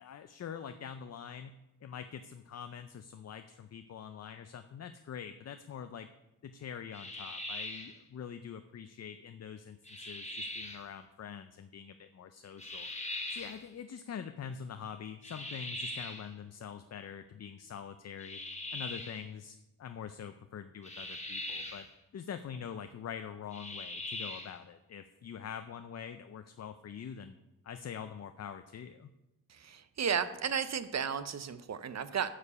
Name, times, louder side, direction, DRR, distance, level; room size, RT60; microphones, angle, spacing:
voice 1, 0.0-6.1 6.4-12.9 13.3-18.4 18.7-21.9 22.1-27.4 27.6-29.1, left 7 dB, 50° left, 9 dB, 0.5 m, -44 dB
sound 1, 6.9-8.0 9.8-10.8 12.6-13.6 15.2-16.3 18.2-19.2 20.8-21.9 23.5-24.6, left 2 dB, 20° left, 1.2 m, -41 dB
voice 2, 29.5-32.3, right 7 dB, 50° right, 13 dB, 0.6 m, -34 dB
9.7 x 5.0 x 6.8 m, 0.96 s
wide cardioid pair, 115°, 34 cm